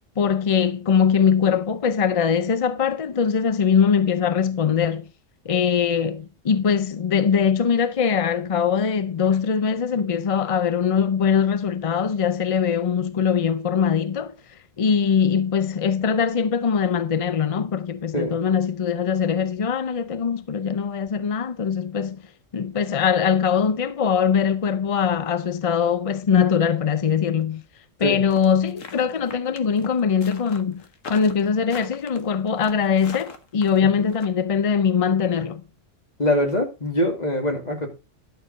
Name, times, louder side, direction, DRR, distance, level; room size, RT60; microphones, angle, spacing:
voice 1, 0.2-5.1 5.5-14.3 14.8-22.2 22.5-27.6 28.0-30.8 31.1-35.6, left 7 dB, 50° left, 0.4 m, -22 dB
sound 1, 28.3-34.3, left 5 dB, 80° left, 1.5 m, -40 dB
voice 2, 36.2-37.9, left 1 dB, 35° left, 2.4 m, -23 dB
11.0 x 6.8 x 4.0 m
omnidirectional pair, 1.3 m